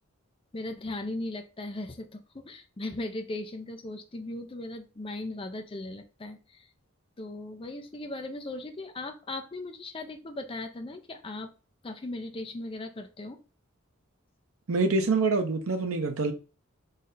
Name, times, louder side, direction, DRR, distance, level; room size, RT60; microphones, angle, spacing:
voice 1, 0.5-6.7 7.2-11.5 11.8-13.4, left 2 dB, 25° left, 0.6 m, -38 dB
voice 2, 14.7-16.3, right 3 dB, 80° right, 0.7 m, -25 dB
4.0 x 3.2 x 4.0 m
head